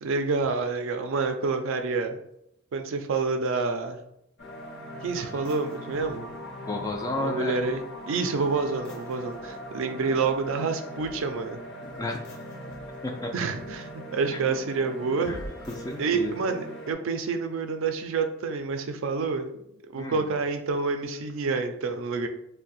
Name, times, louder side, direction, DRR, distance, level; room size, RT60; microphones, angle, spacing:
voice 1, 0.0-2.2 2.7-4.0 5.0-6.3 7.2-11.6 13.3-15.4 16.0-19.5 19.9-22.3, right 4 dB, 65° right, 6 dB, 0.4 m, -28 dB
sound 1, 4.4-16.9, equal, 55° left, 0.7 m, -40 dB
voice 2, 6.7-7.7 12.0-12.2 13.0-13.3 14.3-14.6 15.3-16.3 20.0-20.3, left 2 dB, 15° left, 2 dB, 0.3 m, -33 dB
2.6 x 2.1 x 4.0 m, 0.79 s
head